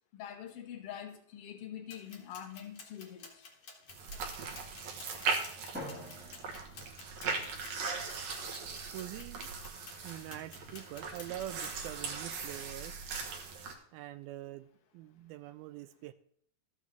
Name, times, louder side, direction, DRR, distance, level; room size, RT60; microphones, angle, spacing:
voice 1, 0.1-3.3, left 10 dB, 70° left, 2 dB, 1.4 m, -45 dB
sound 1, 1.9-12.1, left 4 dB, 50° left, 1.6 m, -53 dB
sound 2, 3.9-13.7, right 4 dB, 60° right, 1.9 m, -39 dB
Drum, 5.7-7.7, equal, 5° right, 0.9 m, -47 dB
voice 2, 8.9-9.5 10.0-13.2 13.9-16.1, right 14 dB, 85° right, 13 dB, 2.3 m, -44 dB
13.5 x 7.3 x 3.4 m, 0.65 s
omnidirectional pair, 4.3 m